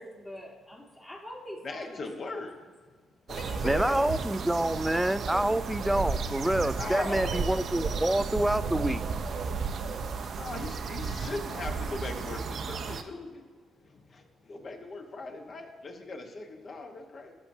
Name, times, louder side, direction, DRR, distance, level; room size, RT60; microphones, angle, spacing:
voice 1, 0.0-2.0 2.2-2.4 3.7-4.0, equal, 25° left, -4 dB, 1.5 m, -44 dB
voice 2, 1.6-2.5 3.3-4.1 6.8-7.4 10.4-13.5 13.8-17.3, left 3 dB, 45° left, 4 dB, 1.1 m, -39 dB
sound 1, 3.3-13.0, right 5 dB, 60° right, 0.6 m, -33 dB
voice 3, 3.6-9.0, right 1 dB, 5° right, 14 dB, 0.3 m, -27 dB
14.0 x 6.0 x 2.7 m, 1.5 s
cardioid pair, 90°, 0 cm